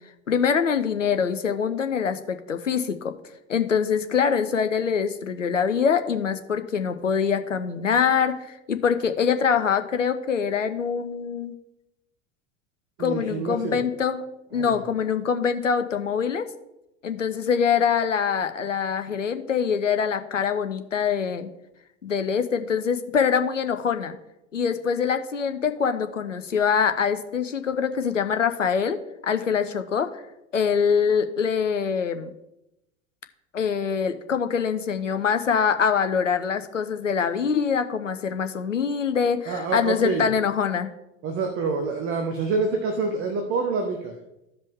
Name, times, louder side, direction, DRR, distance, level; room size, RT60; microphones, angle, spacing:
voice 1, 0.3-3.1 3.5-11.6 13.0-14.2 14.5-16.4 17.0-21.5 22.0-24.2 24.5-30.1 30.5-32.3 33.5-40.9, left 6 dB, 80° left, 9 dB, 0.8 m, -24 dB
voice 2, 13.0-13.8 14.5-14.8 39.5-40.3 41.2-44.2, right 4 dB, 35° right, 4 dB, 1.2 m, -27 dB
14.5 x 5.2 x 3.6 m, 0.89 s
figure-of-eight pair, 75°, 37 cm